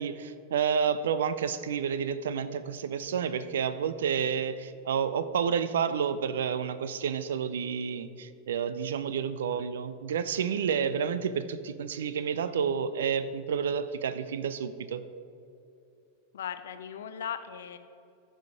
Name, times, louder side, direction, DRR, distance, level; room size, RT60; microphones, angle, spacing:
voice 1, 0.0-15.0, right 7 dB, 60° right, 14 dB, 0.5 m, -30 dB
voice 2, 16.3-17.8, left 9 dB, 60° left, 10 dB, 0.6 m, -37 dB
14.0 x 5.6 x 5.0 m, 2.6 s
figure-of-eight pair, 90°, 0 cm